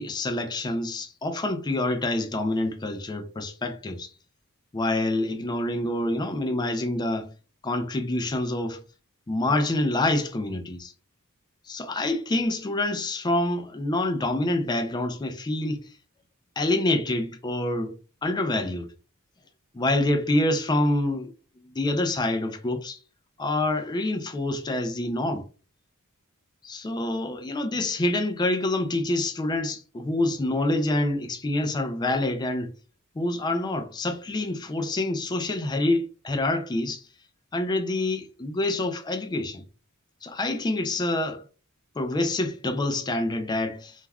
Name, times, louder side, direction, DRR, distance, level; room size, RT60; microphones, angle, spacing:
voice 1, 0.0-4.1 4.7-7.3 7.6-8.8 9.3-10.9 11.7-15.9 16.6-17.9 18.2-18.9 19.7-21.3 21.6-23.0 23.4-25.4 26.6-32.7 33.2-37.0 37.5-39.6 40.2-41.4 42.0-43.9, left 2 dB, 20° left, 0.4 m, -26 dB
2.3 x 2.2 x 3.3 m
head